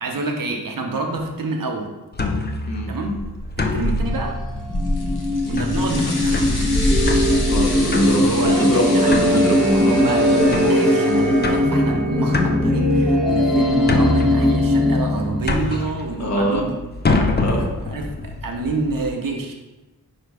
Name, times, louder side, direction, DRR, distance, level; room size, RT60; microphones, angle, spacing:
voice 1, 0.0-1.9 2.9-3.2 3.6-4.4 5.4-6.5 8.3-9.5 9.9-16.8 17.1-17.3 17.6-19.5, right 3 dB, 60° right, 2 dB, 0.8 m, -27 dB
sound 1, 2.1-19.0, left 2 dB, 25° left, 0.5 m, -25 dB
sound 2, 4.1-15.4, left 1 dB, ahead, 1.0 m, -20 dB
sound 3, 4.7-11.7, left 2 dB, 85° left, 0.9 m, -33 dB
voice 2, 7.5-9.9 16.2-16.6 17.4-17.7, right 1 dB, 45° left, -1 dB, 1.0 m, -22 dB
4.4 x 2.5 x 4.7 m, 1.1 s
wide cardioid pair, 65°, 38 cm